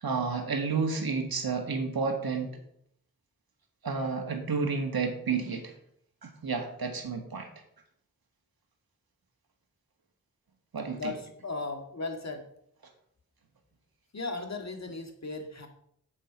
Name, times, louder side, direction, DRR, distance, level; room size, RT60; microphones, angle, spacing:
voice 1, 0.0-2.5 3.8-5.7 6.2-7.5 10.7-11.1, right 4 dB, 80° right, 4 dB, 1.9 m, -31 dB
voice 2, 10.8-12.5 14.1-15.7, left 3 dB, 45° left, 4 dB, 1.9 m, -37 dB
7.8 x 7.7 x 5.2 m, 0.69 s
cardioid pair, 55°, 36 cm